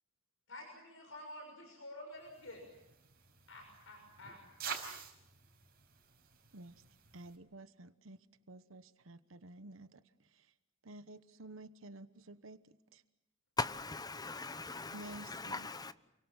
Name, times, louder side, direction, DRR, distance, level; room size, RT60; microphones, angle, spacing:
voice 1, 0.5-2.6 3.5-4.4, left 1 dB, 65° left, 6.2 m, -50 dB
sound 1, 2.2-7.4, right 7 dB, 45° right, 5.4 m, -49 dB
voice 2, 7.1-10.0 10.3-10.5 10.8-12.6 12.9-13.0 14.9-15.7, right 2 dB, 70° right, 1.1 m, -52 dB
voice 3, 13.6-15.9, left 3 dB, 20° left, 1.0 m, -40 dB
29.0 x 24.0 x 7.4 m
head